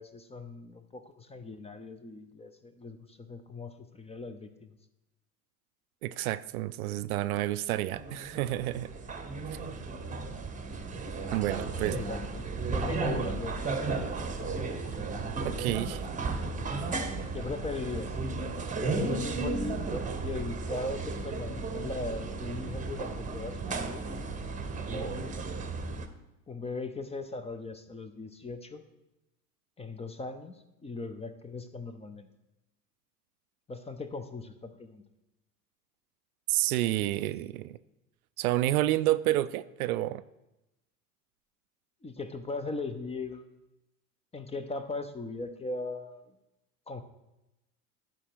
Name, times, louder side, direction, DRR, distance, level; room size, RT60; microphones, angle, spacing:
voice 1, 0.0-4.8 11.7-12.4 12.7-14.0 14.4-14.9 16.7-16.8 17.3-18.2 18.8-24.1 24.9-25.2 26.5-28.8 29.8-32.3 33.7-35.0 42.0-43.6 44.3-46.3 46.9-47.0, left 3 dB, 15° left, 0.7 m, -39 dB
voice 2, 6.0-8.9 9.5-9.6 11.3-11.9 15.4-16.0 36.5-37.8 38.4-40.2, right 15 dB, 65° right, 0.5 m, -29 dB
sound 1, 7.9-26.1, right 3 dB, 15° right, 1.0 m, -34 dB
11.5 x 5.2 x 4.7 m
hypercardioid pair, 80°, 47 cm